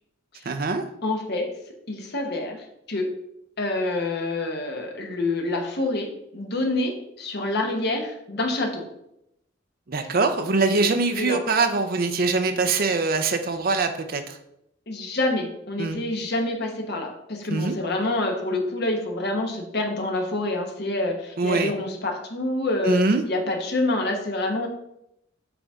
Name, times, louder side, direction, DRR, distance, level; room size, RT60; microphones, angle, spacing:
voice 1, 0.4-0.8 9.9-14.4 15.8-16.0 17.5-17.7 21.4-21.7 22.8-23.2, right 3 dB, 45° right, 7 dB, 0.6 m, -23 dB
voice 2, 1.0-1.5 1.9-3.1 3.6-8.8 9.9-10.1 10.7-10.8 11.2-11.4 14.9-24.7, left 2 dB, 55° left, 2 dB, 1.1 m, -27 dB
6.9 x 4.0 x 3.6 m, 0.79 s
head